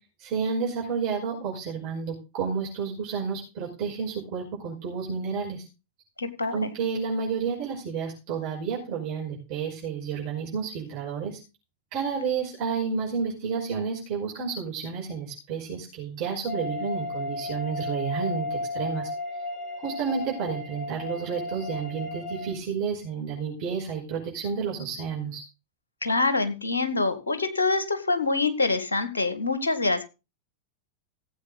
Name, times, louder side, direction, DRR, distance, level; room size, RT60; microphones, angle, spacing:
voice 1, 0.2-5.7 6.5-11.4 11.9-19.1 19.8-25.4, right 6 dB, 45° right, -3 dB, 5.6 m, -31 dB
voice 2, 6.2-6.7 26.0-30.0, left 3 dB, 75° left, 9 dB, 1.8 m, -25 dB
sound 1, 16.5-22.5, left 2 dB, 15° left, 3.9 m, -34 dB
16.5 x 8.1 x 4.0 m, 0.29 s
figure-of-eight pair, 90°, 0 cm